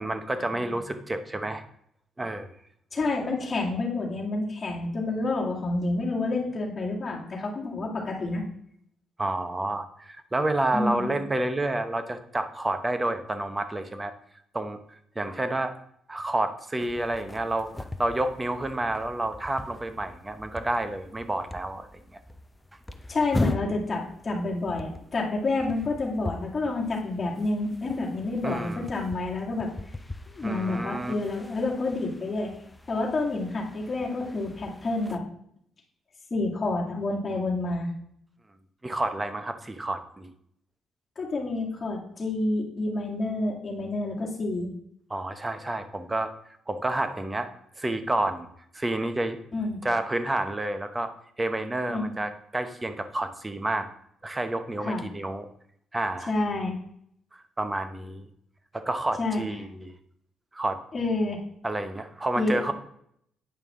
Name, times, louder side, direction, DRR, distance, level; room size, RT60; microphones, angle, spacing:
voice 1, 0.0-1.6 2.2-2.5 9.2-14.1 14.5-14.8 15.2-15.7 16.1-17.7 18.0-21.9 28.4-28.9 30.4-31.1 38.8-40.3 45.1-46.3 46.7-47.5 47.8-48.5 48.7-49.4 49.8-51.1 51.4-53.9 54.2-55.5 55.9-56.3 57.3-58.3 58.7-59.9 60.5-60.8 61.6-62.7, right 2 dB, 20° right, 9 dB, 0.8 m, -29 dB
voice 2, 2.9-8.4 10.7-11.1 23.1-29.7 30.3-32.5 32.9-35.2 36.3-37.9 41.2-44.7 49.5-49.8 51.9-52.1 54.8-55.0 56.3-56.8 59.2-59.4 60.9-61.4 62.4-62.7, left 2 dB, 30° left, -4 dB, 2.2 m, -29 dB
sound 1, 16.8-35.2, left 2 dB, 10° left, 0.6 m, -40 dB
8.9 x 5.4 x 3.6 m, 0.68 s
cardioid pair, 90°, 0 cm